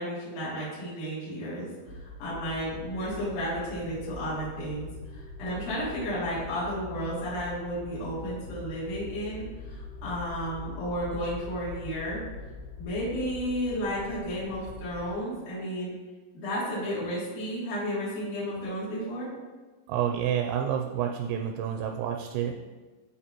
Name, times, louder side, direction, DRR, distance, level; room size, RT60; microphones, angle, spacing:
voice 1, 0.0-12.2 12.8-15.9 16.3-19.3, equal, 45° left, -10 dB, 4.0 m, -33 dB
sound 1, 1.9-15.1, left 3 dB, 70° left, 2.5 m, -43 dB
voice 2, 19.9-22.6, right 9 dB, 85° right, 4 dB, 2.8 m, -29 dB
13.0 x 4.9 x 3.0 m, 1.3 s
omnidirectional pair, 5.5 m